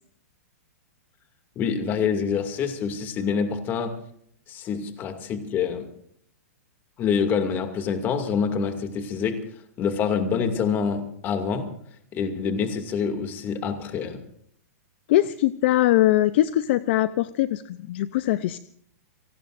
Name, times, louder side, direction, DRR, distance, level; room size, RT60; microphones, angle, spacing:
voice 1, 1.6-4.0 4.5-5.9 7.0-9.5 9.8-11.7 12.1-14.2, left 6 dB, 25° left, 6 dB, 2.4 m, -26 dB
voice 2, 15.1-18.6, left 15 dB, 50° left, 14 dB, 0.6 m, -21 dB
30.0 x 18.5 x 2.6 m, 0.66 s
hypercardioid pair, 155°, 8 cm